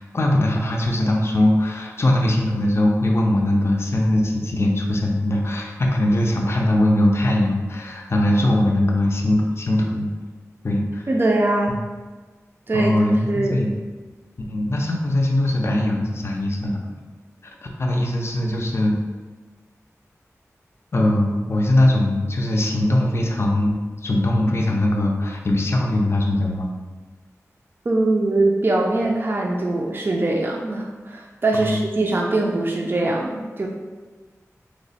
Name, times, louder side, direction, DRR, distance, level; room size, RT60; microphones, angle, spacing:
voice 1, 0.0-10.1 10.6-11.1 11.7-11.8 12.7-13.8 14.5-16.8 17.4-19.0 20.9-26.7 31.5-31.8, left 1 dB, 45° left, 0 dB, 0.4 m, -21 dB
voice 2, 11.1-11.8 12.7-12.9 13.3-13.6 27.9-33.7, right 2 dB, 40° right, -1 dB, 0.3 m, -22 dB
3.0 x 2.0 x 4.0 m, 1.3 s
wide cardioid pair, 60°, 6 cm